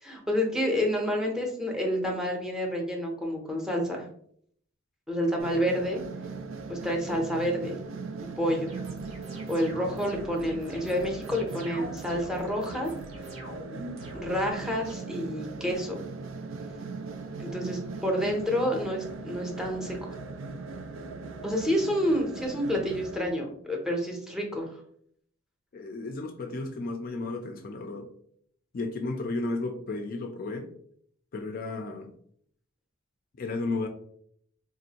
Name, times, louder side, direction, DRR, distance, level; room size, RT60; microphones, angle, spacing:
voice 1, 0.0-4.1 5.1-6.0 6.7-7.8 8.4-8.7 9.5-12.9 14.1-16.0 17.4-20.2 21.4-24.7, equal, 5° right, 0 dB, 0.6 m, -29 dB
sound 1, 5.4-23.2, right 4 dB, 70° right, 0.4 m, -39 dB
sound 2, 8.7-14.9, right 1 dB, 90° right, 1.0 m, -44 dB
voice 2, 25.7-28.1 28.7-30.7 31.3-32.1 33.4-33.9, left 2 dB, 45° left, 5 dB, 0.4 m, -33 dB
3.9 x 2.5 x 2.8 m, 0.64 s
head